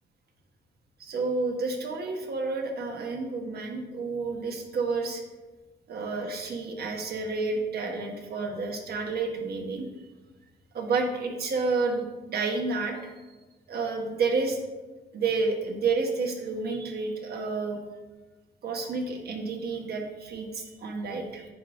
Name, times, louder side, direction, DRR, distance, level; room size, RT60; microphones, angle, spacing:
voice 1, 1.0-5.2 5.9-9.9 10.7-13.0 13.7-14.6 15.1-17.8 18.6-21.5, right 4 dB, 60° right, 2 dB, 1.2 m, -30 dB
10.0 x 3.5 x 3.7 m, 1.2 s
cardioid pair, 110°, 19 cm